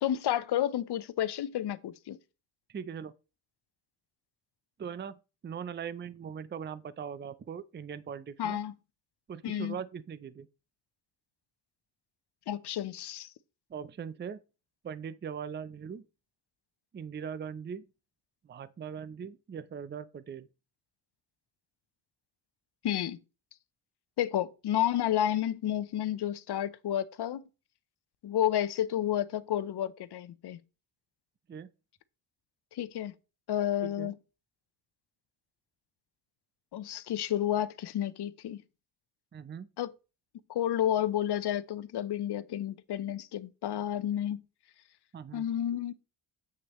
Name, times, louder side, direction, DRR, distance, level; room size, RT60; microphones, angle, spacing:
voice 1, 0.0-2.2 8.4-8.7 9.4-9.8 12.5-13.3 22.8-23.2 24.2-27.4 28.2-30.6 32.7-33.1 33.5-34.1 36.7-38.6 39.8-39.9 40.5-44.4 45.3-45.9, left 11 dB, 55° left, 0.8 m, -31 dB
voice 2, 2.7-3.1 4.8-8.6 9.3-10.5 13.7-14.4 14.8-16.0 16.9-17.9 18.4-20.5 31.5-31.7 33.8-34.1 39.3-39.7 45.1-45.5, right 7 dB, 25° right, 0.5 m, -40 dB
8.1 x 6.2 x 3.1 m
supercardioid pair, 65°, 48 cm